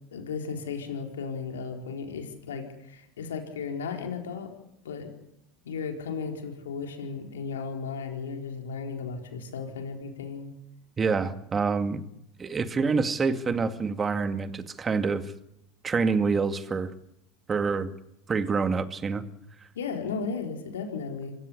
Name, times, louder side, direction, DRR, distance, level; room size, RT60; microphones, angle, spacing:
voice 1, 0.1-4.5 4.8-5.1 5.6-10.5 19.7-21.4, left 5 dB, 90° left, 4 dB, 4.4 m, -35 dB
voice 2, 11.0-12.0 12.4-15.2 15.8-16.9 17.5-17.9 18.3-19.2, right 4 dB, 25° right, 10 dB, 2.2 m, -26 dB
26.0 x 16.5 x 9.9 m, 0.80 s
hypercardioid pair, 90°, 0 cm